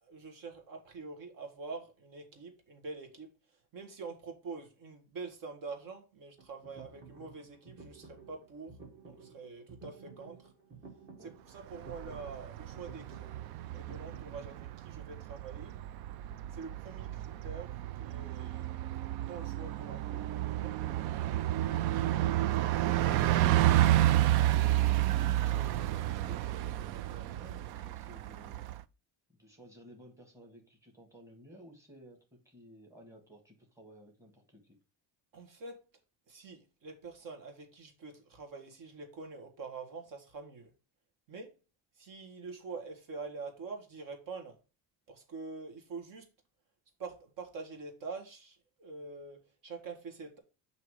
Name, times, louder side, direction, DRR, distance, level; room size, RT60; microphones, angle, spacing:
voice 1, 0.0-3.3 3.7-8.7 9.0-10.4 11.2-13.3 13.7-15.7 16.5-17.7 18.0-18.7 19.1-20.2 20.5-20.8 35.3-35.8 36.3-40.7 41.3-41.5 42.0-44.6 45.1-46.3 47.0-50.4, right 4 dB, 60° right, 1.4 m, -45 dB
sound 1, 6.4-14.5, right 5 dB, 30° right, 1.1 m, -53 dB
Bus, 11.7-28.8, right 14 dB, 85° right, 0.5 m, -31 dB
voice 2, 25.4-28.7 29.3-34.8, equal, 10° right, 1.6 m, -54 dB
7.6 x 2.9 x 4.8 m
cardioid pair, 150°, 37 cm